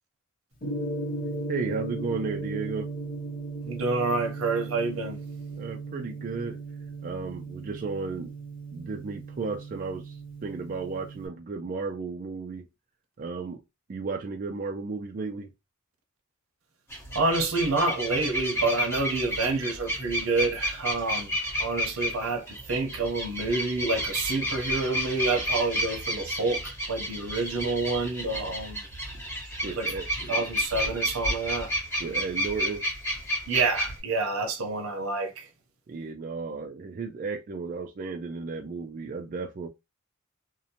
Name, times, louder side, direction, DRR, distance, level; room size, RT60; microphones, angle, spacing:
Gong, 0.6-11.3, right 2 dB, 40° left, 0.7 m, -36 dB
voice 1, 1.5-2.9 5.6-6.6 7.0-8.3 8.7-12.7 13.2-13.6 13.9-15.5 29.1-29.2 29.6-30.1 32.0-32.8 35.9-39.7, right 4 dB, 40° right, 0.3 m, -34 dB
voice 2, 3.6-5.2 17.1-28.9 29.7-29.9 30.3-31.7 33.5-35.5, right 3 dB, 80° right, 0.7 m, -28 dB
sound 1, 16.9-34.0, equal, 10° left, 0.9 m, -31 dB
2.7 x 2.1 x 2.7 m
head